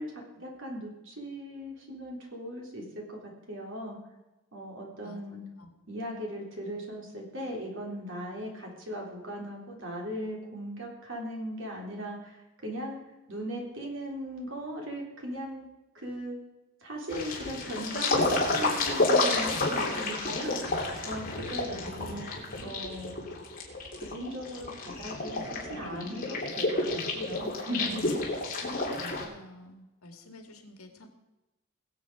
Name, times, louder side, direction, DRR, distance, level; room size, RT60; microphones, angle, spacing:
voice 1, 0.0-4.0 4.5-5.4 5.9-13.0 13.3-15.7 15.9-16.4 16.8-22.3 22.6-23.2 24.0-28.2, equal, 60° right, -1 dB, 3.7 m, -38 dB
sound 1, 17.1-29.2, left 2 dB, 40° left, 3.0 m, -30 dB
voice 2, 21.6-22.2 29.0-31.1, left 1 dB, 80° left, 5 dB, 2.2 m, -49 dB
21.5 x 7.9 x 4.8 m, 1.0 s
head